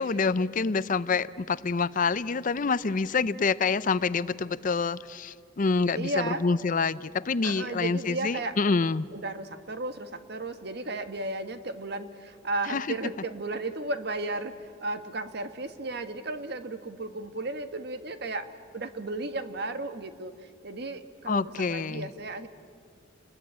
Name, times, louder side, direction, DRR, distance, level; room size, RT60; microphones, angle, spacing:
voice 1, 0.0-9.1 12.7-12.9 21.3-22.1, left 4 dB, 45° left, 17 dB, 0.5 m, -27 dB
voice 2, 5.9-6.4 7.4-8.6 9.1-18.5 18.7-20.3 20.6-22.5, right 2 dB, 60° right, 9 dB, 1.5 m, -34 dB
29.0 x 21.0 x 8.6 m, 2.3 s
head